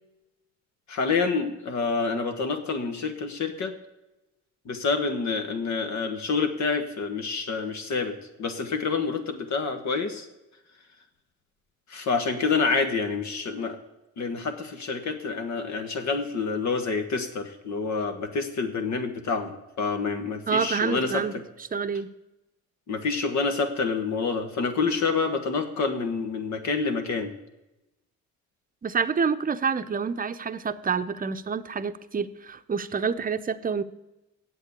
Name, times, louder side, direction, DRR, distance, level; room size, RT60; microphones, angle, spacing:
voice 1, 0.9-3.7 4.7-10.3 11.9-13.8 14.2-21.4 22.9-27.3, left 4 dB, 65° left, 7 dB, 1.7 m, -28 dB
voice 2, 20.5-21.4 21.7-22.1 28.8-33.8, right 6 dB, 30° right, 11 dB, 0.7 m, -28 dB
8.1 x 7.8 x 8.2 m, 0.97 s
cardioid pair, 90°, 30 cm